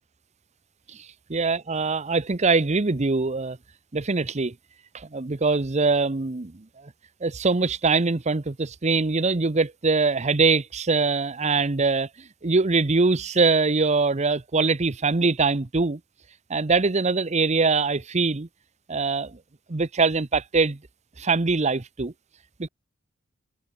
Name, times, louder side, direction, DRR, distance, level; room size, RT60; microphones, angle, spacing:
voice 1, 1.3-3.6 3.9-4.5 4.9-6.6 7.2-16.0 16.5-18.5 18.9-19.4 19.7-20.8 21.2-22.1 22.6-22.7, right 4 dB, 35° right, 0.8 m, -23 dB
head